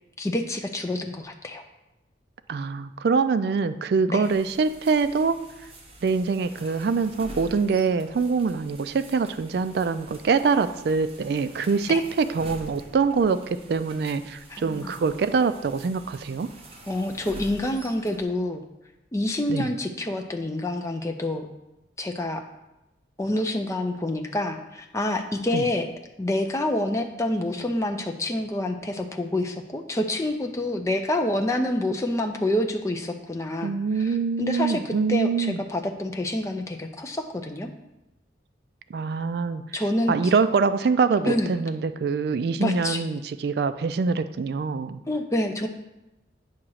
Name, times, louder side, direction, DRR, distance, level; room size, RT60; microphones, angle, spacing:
voice 1, 0.2-1.6 4.1-4.3 11.9-12.0 14.5-15.0 16.9-18.6 19.1-21.5 22.0-22.4 23.2-25.9 26.2-37.7 39.7-40.3 41.3-41.5 42.6-43.0 45.1-45.7, left 1 dB, 15° left, 4 dB, 0.5 m, -27 dB
voice 2, 2.5-5.4 6.0-16.5 19.5-19.7 25.5-25.7 33.6-35.6 38.9-39.6 40.1-45.0, right 5 dB, 55° right, 12 dB, 0.3 m, -24 dB
sound 1, 4.2-18.2, right 1 dB, 30° right, 0.9 m, -46 dB
8.6 x 2.9 x 6.3 m, 0.94 s
head